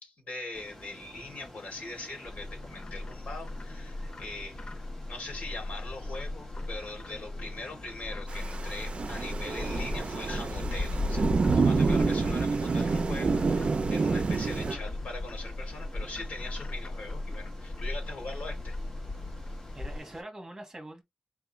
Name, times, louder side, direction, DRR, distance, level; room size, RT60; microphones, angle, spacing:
voice 1, 0.0-4.7 5.1-18.8, left 2 dB, 70° left, 3.1 m, -42 dB
Ocean, 0.5-20.2, left 1 dB, 15° left, 1.9 m, -50 dB
Bird, 2.3-20.0, left 2 dB, 40° left, 0.6 m, -37 dB
Thunder / Rain, 8.3-14.8, right 4 dB, 50° right, 0.5 m, -28 dB
voice 2, 19.8-21.0, right 1 dB, 20° right, 1.7 m, -43 dB
4.7 x 3.5 x 3.1 m
wide cardioid pair, 150°, 2 cm